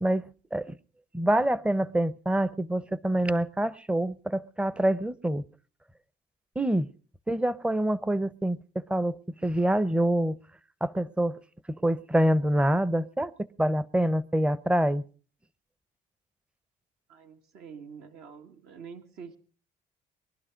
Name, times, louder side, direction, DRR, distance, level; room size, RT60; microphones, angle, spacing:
voice 1, 0.0-0.7 1.1-5.4 6.6-6.9 7.3-10.4 10.8-11.4 11.7-13.3 13.6-15.0, right 1 dB, 5° right, 0.7 m, -26 dB
voice 2, 17.1-19.4, right 6 dB, 75° right, 2.1 m, -46 dB
22.5 x 12.0 x 5.1 m
cardioid pair, 110°, 17 cm